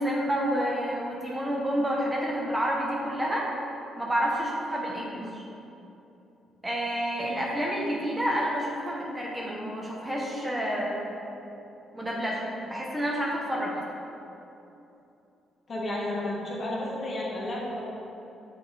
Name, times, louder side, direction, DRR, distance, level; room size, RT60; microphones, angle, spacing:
voice 1, 0.0-3.5 4.0-5.4 6.6-11.2 11.9-13.8, equal, 15° right, -3 dB, 0.8 m, -29 dB
voice 2, 15.7-17.8, left 1 dB, 40° left, -5 dB, 1.5 m, -32 dB
7.4 x 3.9 x 3.3 m, 2.9 s
cardioid pair, 90°, 0 cm